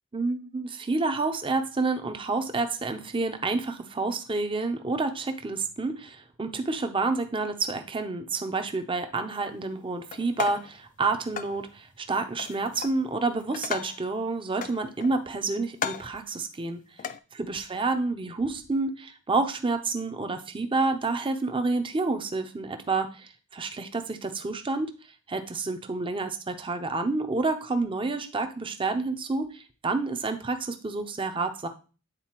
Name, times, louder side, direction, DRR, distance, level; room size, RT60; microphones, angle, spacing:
voice 1, 0.1-16.8 17.4-24.9 25.3-31.7, right 3 dB, 20° right, 7 dB, 0.6 m, -29 dB
sound 1, 10.1-10.8 11.4-11.6 12.4-13.0 13.4-14.1 14.6-15.3 15.7-16.2 17.0-17.2, left 8 dB, 35° left, 0.3 m, -35 dB
9.0 x 4.0 x 3.0 m, 0.35 s
head